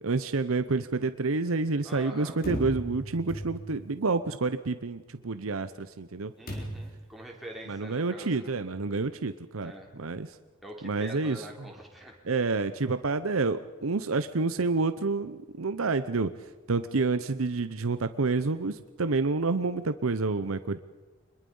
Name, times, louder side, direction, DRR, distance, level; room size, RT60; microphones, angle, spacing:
voice 1, 0.0-6.3 7.7-10.3 10.8-11.4 12.2-20.8, right 3 dB, 85° right, 11 dB, 0.8 m, -29 dB
voice 2, 1.8-2.4 6.4-8.5 9.6-9.9 10.6-12.2, right 1 dB, ahead, -2 dB, 4.0 m, -44 dB
sound 1, 2.4-3.9 6.5-7.0, equal, 45° left, 4.2 m, -36 dB
25.0 x 22.0 x 5.5 m, 1.2 s
head